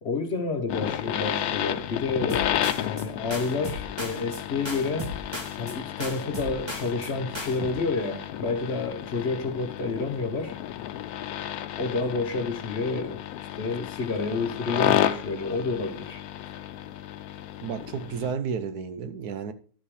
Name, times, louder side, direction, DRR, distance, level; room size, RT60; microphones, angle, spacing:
voice 1, 0.0-2.4 2.7-5.1 5.6-10.6 11.8-13.2 13.6-16.2, left 4 dB, 50° left, 1.3 m, -29 dB
sound 1, 0.7-18.3, left 11 dB, 80° left, 1.1 m, -32 dB
sound 2, 2.3-3.1 3.3-4.4 4.7-5.7 6.0-7.1 7.3-7.7, left 1 dB, 20° right, 1.4 m, -36 dB
voice 2, 17.6-19.5, right 6 dB, 85° right, 1.4 m, -32 dB
11.5 x 5.6 x 4.9 m
omnidirectional pair, 1.6 m